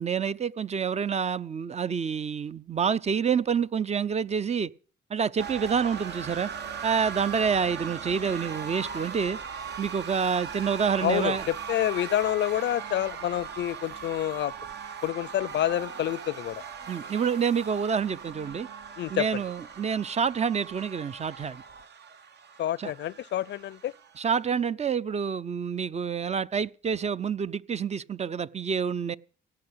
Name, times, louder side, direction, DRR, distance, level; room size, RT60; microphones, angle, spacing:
voice 1, 0.0-4.7 5.1-6.5 6.8-9.4 9.8-11.5 16.9-18.7 19.1-21.6 22.8-22.9 24.2-29.2, right 6 dB, 35° right, 0.6 m, -28 dB
sound 1, 5.4-24.5, right 6 dB, 60° right, 1.2 m, -39 dB
voice 2, 11.0-14.5 15.0-16.6 19.0-19.4 22.6-23.9, left 12 dB, 65° left, 0.6 m, -28 dB
16.5 x 8.7 x 7.9 m
cardioid pair, 90°, 20 cm